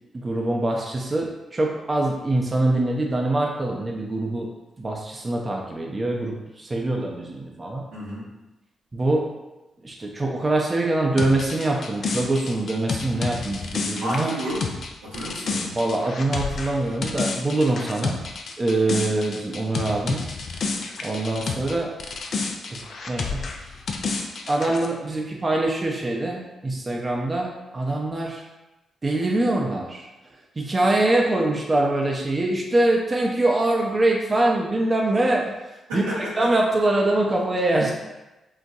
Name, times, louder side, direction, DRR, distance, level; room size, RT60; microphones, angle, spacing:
voice 1, 0.1-4.5 4.8-7.9 8.9-9.2 9.8-14.3 15.7-18.2 18.6-20.3 21.0-21.9 22.2-22.4 22.7-22.8 23.1-23.5 24.5-28.4 29.0-30.1 30.6-35.4 35.9-37.9, right 2 dB, 35° right, 0 dB, 0.5 m, -24 dB
voice 2, 7.9-8.3 14.0-14.6 15.0-15.8 35.9-36.5, right 1 dB, 90° right, -8 dB, 0.9 m, -31 dB
sound 1, 11.2-21.7 22.0-24.9, left 4 dB, 60° left, 0.4 m, -30 dB
3.9 x 2.2 x 2.6 m, 1.0 s
hypercardioid pair, 40°, 0 cm